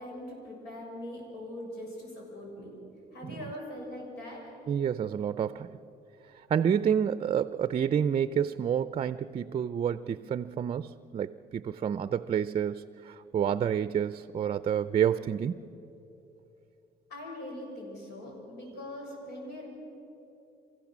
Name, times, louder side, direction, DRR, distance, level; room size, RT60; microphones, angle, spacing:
voice 1, 0.0-2.7 3.1-4.4 17.1-19.7, left 1 dB, 80° left, -1 dB, 6.6 m, -41 dB
voice 2, 4.7-5.7 6.5-15.6, right 8 dB, 35° right, 14 dB, 0.5 m, -29 dB
27.0 x 15.5 x 7.4 m, 2.9 s
cardioid pair, 110°, 17 cm